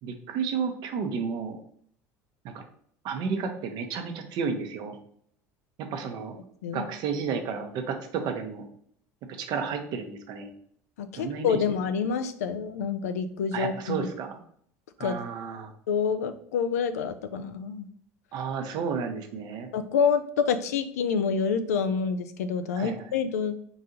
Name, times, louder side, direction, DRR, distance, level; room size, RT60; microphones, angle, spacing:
voice 1, 0.0-1.6 2.4-2.6 3.0-5.0 5.9-6.3 6.7-8.7 9.4-10.5 11.1-11.6 13.5-14.4 15.0-15.7 18.3-19.7 22.8-23.0, right 6 dB, 60° right, 6 dB, 0.8 m, -32 dB
voice 2, 11.0-14.1 15.0-15.2 15.9-17.9 19.7-23.5, left 6 dB, 90° left, 10 dB, 0.4 m, -27 dB
3.9 x 2.7 x 3.8 m, 0.64 s
hypercardioid pair, 80°, 8 cm